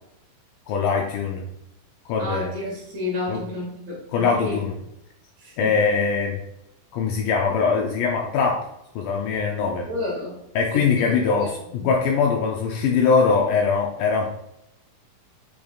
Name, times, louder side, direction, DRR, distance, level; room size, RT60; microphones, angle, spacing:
voice 1, 0.7-1.5 2.1-2.5 3.3-3.4 4.1-4.8 5.6-6.4 6.9-8.6 9.0-9.9 10.6-14.3, left 5 dB, 85° left, 0 dB, 1.8 m, -22 dB
voice 2, 2.2-4.6 5.4-5.8 9.9-10.4 10.7-11.5 11.8-11.9, left 2 dB, 60° right, -5 dB, 1.9 m, -31 dB
7.0 x 3.0 x 2.3 m, 0.82 s
omnidirectional pair, 4.1 m